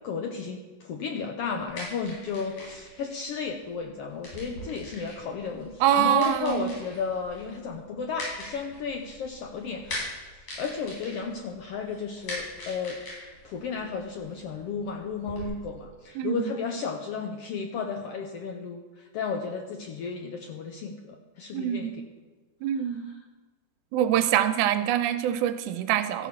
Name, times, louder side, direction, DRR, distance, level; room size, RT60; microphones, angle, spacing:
voice 1, 0.0-13.0 13.4-21.9, left 5 dB, 75° left, 3 dB, 1.4 m, -33 dB
sound 1, 1.4-15.5, left 1 dB, 60° left, 5.6 m, -42 dB
voice 2, 5.8-6.8 16.2-16.6 21.5-22.0 22.6-23.1 23.9-26.3, right 10 dB, 90° right, 10 dB, 2.1 m, -25 dB
13.5 x 5.0 x 7.1 m, 1.3 s
omnidirectional pair, 3.5 m